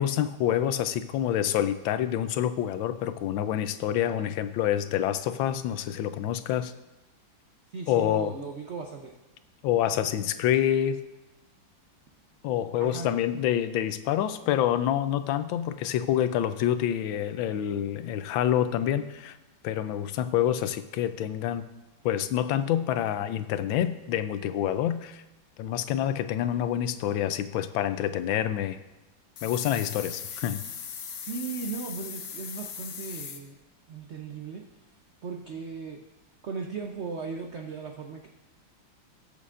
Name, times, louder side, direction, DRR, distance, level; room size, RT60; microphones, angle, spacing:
voice 1, 0.0-6.7 7.9-8.3 9.6-11.0 12.4-19.4 19.6-21.7 22.0-25.2 25.6-28.8 29.4-30.6, left 11 dB, 80° left, 11 dB, 1.4 m, -27 dB
voice 2, 7.7-9.1 12.8-13.1 31.2-33.6 33.9-34.6 35.2-36.0 36.4-38.3, right 5 dB, 85° right, 3 dB, 0.6 m, -37 dB
sound 1, 29.4-33.4, left 7 dB, 60° left, 1.1 m, -39 dB
20.0 x 6.9 x 2.5 m, 0.97 s
omnidirectional pair, 2.1 m